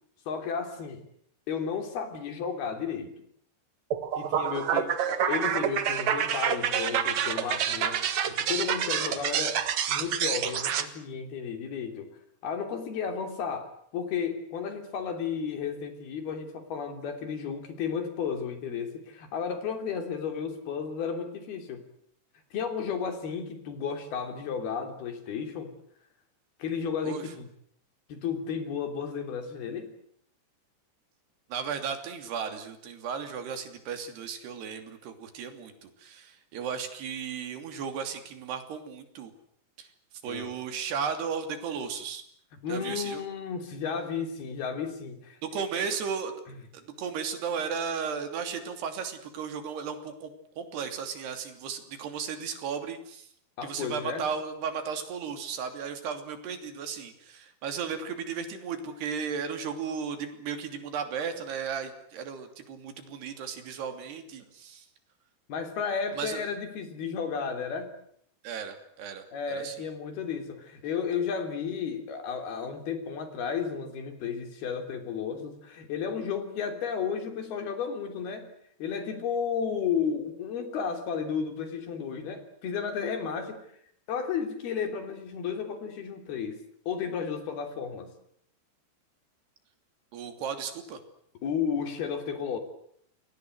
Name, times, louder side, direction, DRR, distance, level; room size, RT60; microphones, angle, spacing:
voice 1, 0.3-1.0 1.5-3.1 4.2-9.6 9.9-12.1 12.4-21.8 22.5-25.7 26.6-27.5 28.1-29.9 40.3-40.5 42.6-45.9 53.6-54.2 65.5-67.9 69.3-78.5 78.8-83.7 84.1-88.1 91.4-92.6, left 6 dB, 65° left, 7 dB, 5.1 m, -33 dB
sound 1, 3.9-10.9, right 9 dB, 55° right, 2.2 m, -28 dB
voice 2, 31.5-39.3 39.8-39.9 40.2-42.2 42.7-43.2 45.4-46.4 46.7-50.3 50.6-53.3 53.6-64.9 66.2-66.4 68.4-69.8 90.1-91.0, right 6 dB, 70° right, 8 dB, 5.0 m, -35 dB
29.0 x 22.0 x 8.0 m, 0.67 s
omnidirectional pair, 4.9 m